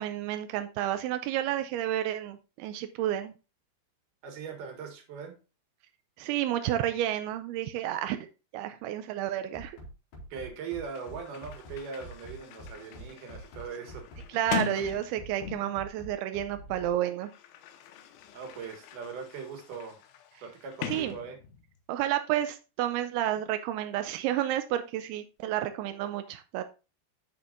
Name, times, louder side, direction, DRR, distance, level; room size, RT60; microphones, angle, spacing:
voice 1, 0.0-3.3 6.2-8.2 8.5-9.8 14.3-17.3 20.9-21.2 21.9-26.6, right 12 dB, 85° right, 9 dB, 2.2 m, -30 dB
voice 2, 4.2-5.3 8.7-8.8 10.3-14.1 18.3-20.0 20.4-21.4, right 6 dB, 55° right, 4 dB, 2.8 m, -40 dB
Bass drum, 9.5-16.9, equal, 70° left, 5.0 m, -45 dB
Sliding door, 10.5-10.6 10.8-15.9 16.8-21.8, left 8 dB, 85° left, 3.2 m, -41 dB
13.5 x 4.5 x 2.5 m, 0.31 s
omnidirectional pair, 5.1 m